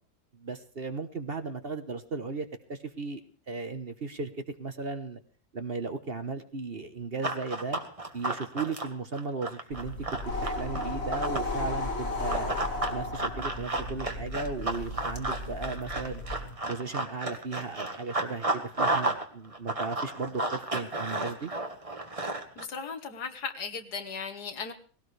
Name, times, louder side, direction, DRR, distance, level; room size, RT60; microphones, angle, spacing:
voice 1, 0.3-3.2 3.5-4.3 4.6-5.2 5.5-7.8 8.1-9.9 10.3-12.5 12.9-16.2 16.6-21.5, right 4 dB, 40° right, 8 dB, 1.3 m, -36 dB
Run, 7.2-11.5 12.3-19.2 19.5-22.6, right 2 dB, 20° right, 1.5 m, -32 dB
sound 1, 9.7-16.6, left 2 dB, 40° left, 2.0 m, -35 dB
voice 2, 22.6-24.7, left 5 dB, 85° left, 6 dB, 2.2 m, -37 dB
19.5 x 17.0 x 3.3 m, 0.41 s
omnidirectional pair, 1.7 m